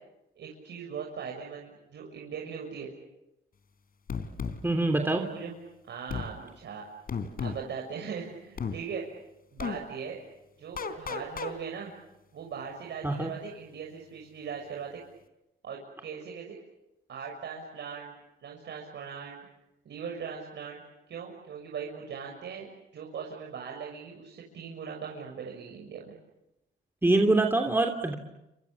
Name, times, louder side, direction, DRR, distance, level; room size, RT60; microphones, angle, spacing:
voice 1, 0.4-2.9 5.0-5.5 5.9-6.8 7.4-9.1 9.5-10.2 10.6-11.9 12.3-15.0 15.6-16.6 17.1-18.1 18.4-19.4 19.8-20.8 21.1-26.1, right 6 dB, 65° right, -1 dB, 6.6 m, -40 dB
sound 1, 4.1-4.6 6.1-6.3 7.1-7.6 8.6-8.8 9.6-9.8 10.8-11.5, left 5 dB, 50° left, 3.5 m, -33 dB
voice 2, 4.6-5.2 13.0-13.3 27.0-28.1, right 2 dB, 10° right, 4 dB, 3.1 m, -24 dB
30.0 x 27.0 x 7.2 m, 0.93 s
cardioid pair, 90°, 20 cm